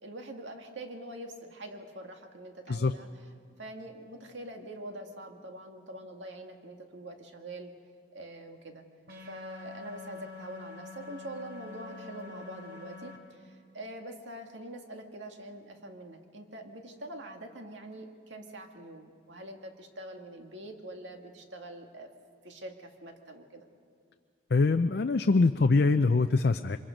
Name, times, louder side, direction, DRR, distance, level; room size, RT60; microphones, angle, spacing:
voice 1, 0.0-3.1 3.6-7.7 8.1-8.8 9.3-22.1 22.4-23.7, right 1 dB, 80° right, 3 dB, 2.0 m, -44 dB
sound 1, 9.1-13.2, left 3 dB, 60° right, 2.8 m, -45 dB
voice 2, 24.5-26.8, left 3 dB, 55° left, 8 dB, 0.5 m, -24 dB
25.0 x 22.0 x 5.2 m, 2.1 s
head